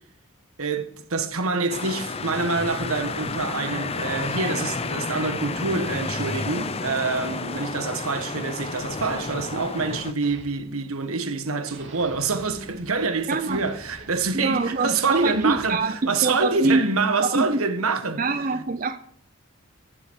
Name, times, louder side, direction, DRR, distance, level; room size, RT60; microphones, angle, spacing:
voice 1, 0.6-15.8 16.1-18.2, right 4 dB, 80° right, 1.5 m, -26 dB
sound 1, 1.7-10.1, left 3 dB, 30° left, 0.6 m, -31 dB
sound 2, 7.7-11.3 11.6-15.7, right 2 dB, 55° right, 3.2 m, -48 dB
voice 2, 13.3-13.6 14.3-16.8 17.2-17.6 18.2-19.0, right 3 dB, 40° right, 0.5 m, -24 dB
14.5 x 7.7 x 6.3 m
head